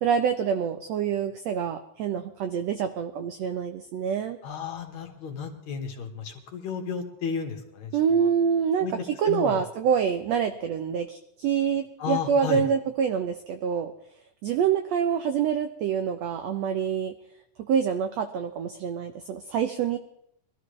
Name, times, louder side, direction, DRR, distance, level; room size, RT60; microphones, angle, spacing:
voice 1, 0.0-4.4 7.9-13.9 14.4-17.1 17.7-20.0, right 7 dB, 80° right, 7 dB, 1.5 m, -26 dB
voice 2, 4.4-7.9 8.2-8.3 8.8-8.9 9.2-9.6 12.0-12.6, left 7 dB, 60° left, 3 dB, 2.6 m, -33 dB
22.5 x 13.5 x 3.2 m, 0.75 s
omnidirectional pair, 3.9 m